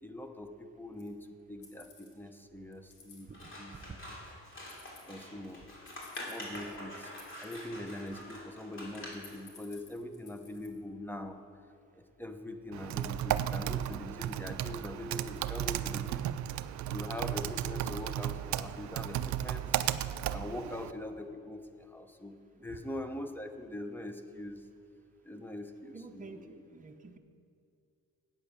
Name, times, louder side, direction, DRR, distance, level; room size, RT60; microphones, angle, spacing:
voice 1, 0.0-3.3 3.6-3.8 5.1-5.7 6.2-7.1 7.4-11.4 11.9-16.3 16.9-19.6 20.3-24.6 25.2-26.5, left 1 dB, 5° left, 7 dB, 0.8 m, -43 dB
sound 1, 1.0-1.1 1.6-2.2 2.7-3.2 4.6-5.1 5.9-6.7 7.2-7.7 8.1-8.5 8.9-10.7, left 6 dB, 80° left, 1.9 m, -55 dB
Scissors, 3.3-9.4, left 1 dB, 40° left, 2.8 m, -46 dB
Typing, 12.7-20.9, right 11 dB, 70° right, 0.4 m, -34 dB
voice 2, 25.9-27.2, right 4 dB, 25° right, 5 dB, 0.8 m, -49 dB
8.8 x 8.4 x 6.4 m, 2.4 s
cardioid pair, 90°, 30 cm